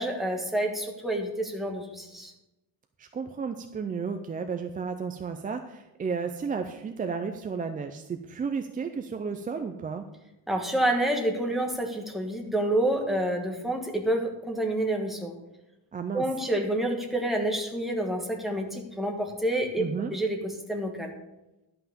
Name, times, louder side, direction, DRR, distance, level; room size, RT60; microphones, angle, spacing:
voice 1, 0.0-2.3 10.5-15.3 16.1-21.1, right 1 dB, ahead, 1 dB, 1.4 m, -28 dB
voice 2, 3.0-10.0 15.9-16.2 19.8-20.2, right 5 dB, 20° right, 6 dB, 0.3 m, -33 dB
11.5 x 5.8 x 6.8 m, 0.97 s
cardioid pair, 160°, 47 cm